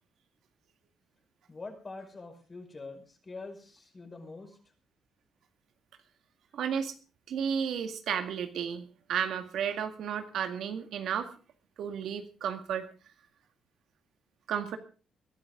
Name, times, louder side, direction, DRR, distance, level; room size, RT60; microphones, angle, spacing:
voice 1, 1.5-4.6, left 3 dB, 30° left, 4 dB, 5.6 m, -45 dB
voice 2, 6.5-6.9 7.3-11.3 11.8-12.9 14.5-14.8, right 8 dB, 75° right, 7 dB, 2.0 m, -33 dB
22.0 x 12.0 x 3.8 m, 0.34 s
cardioid pair, 90°, 0 cm